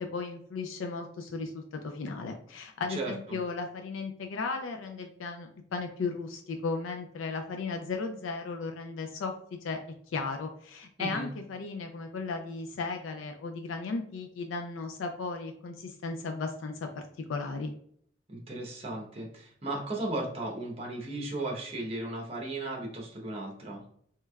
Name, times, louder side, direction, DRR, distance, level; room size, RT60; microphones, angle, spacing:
voice 1, 0.0-9.8 10.1-17.7, left 4 dB, 90° left, 5 dB, 0.4 m, -35 dB
voice 2, 2.9-3.4 11.0-11.3 18.3-23.8, right 2 dB, 30° right, -1 dB, 0.9 m, -36 dB
3.3 x 3.1 x 2.3 m, 0.64 s
head